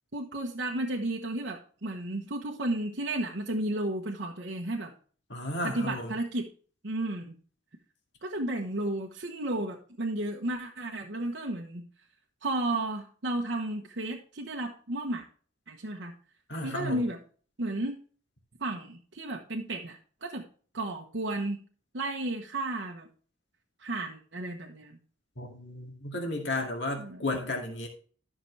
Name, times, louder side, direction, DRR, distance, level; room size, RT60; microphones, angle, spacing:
voice 1, 0.1-4.9 5.6-6.5 6.8-7.3 8.2-11.9 12.4-15.2 15.7-16.1 16.6-17.2 17.6-18.0 18.6-20.4 20.7-21.6 21.9-23.1 23.8-25.0 27.0-27.2, right 1 dB, 60° right, -1 dB, 1.0 m, -33 dB
voice 2, 5.3-6.1 16.5-17.0 25.4-27.9, left 2 dB, 55° left, 1 dB, 2.2 m, -33 dB
13.0 x 6.0 x 3.2 m, 0.43 s
head